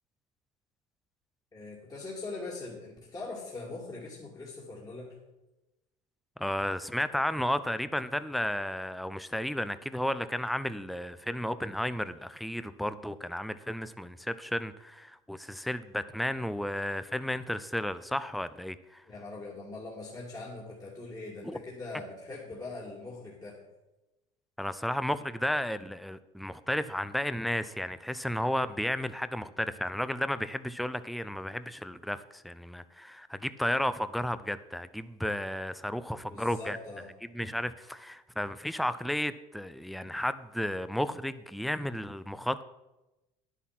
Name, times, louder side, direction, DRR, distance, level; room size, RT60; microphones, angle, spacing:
voice 1, 1.5-5.2 19.1-23.6 36.3-37.1, left 3 dB, 25° left, -4 dB, 2.3 m, -42 dB
voice 2, 6.4-19.0 21.4-21.6 24.6-36.8 37.3-42.6, left 1 dB, ahead, 13 dB, 0.5 m, -33 dB
10.0 x 8.4 x 5.9 m, 1.0 s
supercardioid pair, 100°, 16 cm